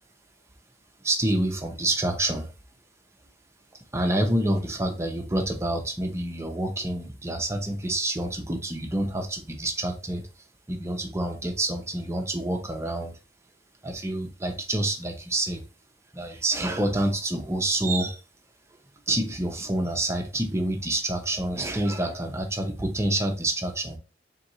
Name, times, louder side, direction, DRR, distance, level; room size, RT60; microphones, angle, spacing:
voice 1, 1.0-2.5 3.9-10.3 10.7-13.2 13.8-15.6 16.1-18.2 19.1-24.0, right 1 dB, 15° right, 0.7 m, -27 dB
4.1 x 3.7 x 3.0 m
head